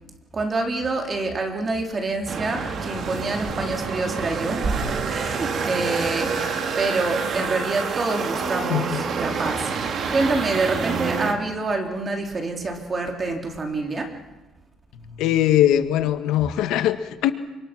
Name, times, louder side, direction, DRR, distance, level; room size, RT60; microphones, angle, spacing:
voice 1, 0.3-6.4 6.7-14.1, right 3 dB, 25° right, 3 dB, 3.8 m, -27 dB
sound 1, 2.3-11.3, right 5 dB, 45° right, 2.7 m, -27 dB
voice 2, 8.7-9.0 15.1-17.3, left 12 dB, 85° left, 9 dB, 1.6 m, -21 dB
28.0 x 25.5 x 6.2 m, 1.1 s
cardioid pair, 135°, 0 cm